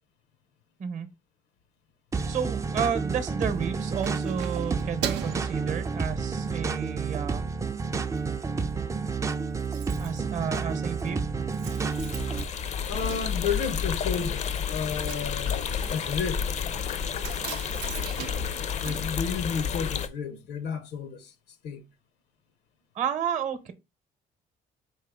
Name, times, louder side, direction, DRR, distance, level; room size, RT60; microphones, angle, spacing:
sound 1, 2.1-12.4, right 5 dB, 20° right, 0.3 m, -30 dB
voice 1, 2.3-7.4 10.0-11.2 23.0-23.7, right 7 dB, 45° right, 0.8 m, -31 dB
Keys jangling, 3.4-6.5 7.0-7.2 7.5-8.2 8.5-8.6 8.8-8.9 9.1-20.0 20.2-20.3, right 10 dB, 90° right, 0.6 m, -41 dB
sound 2, 11.6-20.1, left 7 dB, 45° left, 0.5 m, -31 dB
voice 2, 12.9-14.4 14.7-16.7 18.8-21.3 21.6-21.8, left 6 dB, 80° left, 0.7 m, -32 dB
4.6 x 3.2 x 3.5 m
cardioid pair, 110°, 17 cm